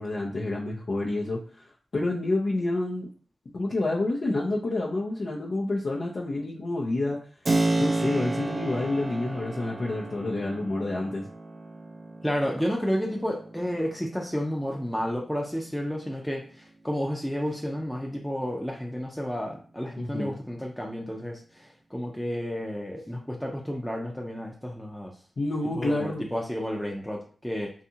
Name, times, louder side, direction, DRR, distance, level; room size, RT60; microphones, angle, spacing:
voice 1, 0.0-3.1 3.5-7.2 7.8-11.3 20.0-20.3 25.4-26.3, left 2 dB, 65° left, -4 dB, 0.5 m, -28 dB
Keyboard (musical), 7.4-16.0, right 2 dB, 45° right, 0.3 m, -32 dB
voice 2, 12.2-25.1 25.8-27.7, equal, 5° left, -2 dB, 0.5 m, -31 dB
2.7 x 2.3 x 2.7 m, 0.42 s
cardioid pair, 40°, 0 cm